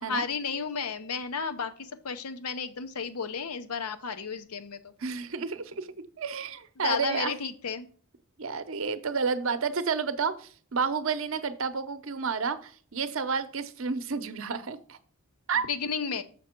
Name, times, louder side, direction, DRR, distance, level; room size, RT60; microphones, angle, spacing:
voice 1, 0.0-4.9 6.8-7.9 15.7-16.2, left 5 dB, 85° left, 0.8 m, -33 dB
voice 2, 5.0-7.3 8.4-15.0 15.5-15.7, right 5 dB, 60° right, 0.7 m, -31 dB
6.8 x 6.0 x 4.4 m
head